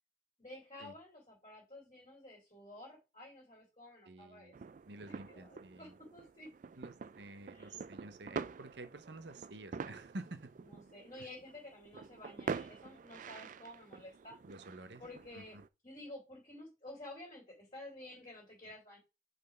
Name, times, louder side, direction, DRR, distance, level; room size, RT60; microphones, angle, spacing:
voice 1, 0.4-4.5 5.1-6.5 7.5-7.8 10.6-14.4 15.0-15.6 15.8-19.0, left 1 dB, 30° left, 2.9 m, -52 dB
voice 2, 4.0-4.5 4.9-6.0 6.8-10.5 14.4-15.0 15.3-15.6, right 2 dB, 70° right, 0.8 m, -50 dB
sound 1, 4.5-15.7, right 5 dB, 45° right, 0.3 m, -46 dB
5.3 x 4.2 x 5.7 m
head